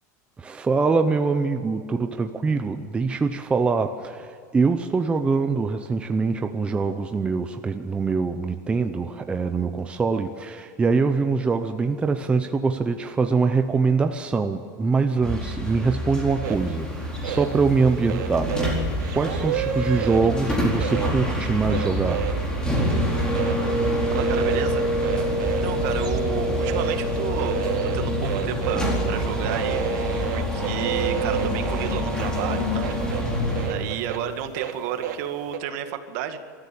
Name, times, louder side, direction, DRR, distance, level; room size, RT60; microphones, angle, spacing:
voice 1, 0.4-18.5 19.1-22.4, right 4 dB, 10° right, 7 dB, 0.7 m, -24 dB
sound 1, 15.2-33.7, equal, 10° left, 4.3 m, -26 dB
sound 2, 16.4-16.6 17.0-17.5 18.1-20.2 20.8-21.1 21.6-22.9 23.2-23.6 24.2-24.6 25.0-26.2 26.6-27.0 27.2-29.0 29.3-33.2 33.6-35.2 35.5-35.6, right 10 dB, 75° right, 2.4 m, -30 dB
voice 2, 24.1-25.1 25.6-29.8 30.3-33.0 33.7-36.4, right 10 dB, 55° right, 7 dB, 2.0 m, -32 dB
27.5 x 13.5 x 7.0 m, 2.5 s
supercardioid pair, 155°, 10 cm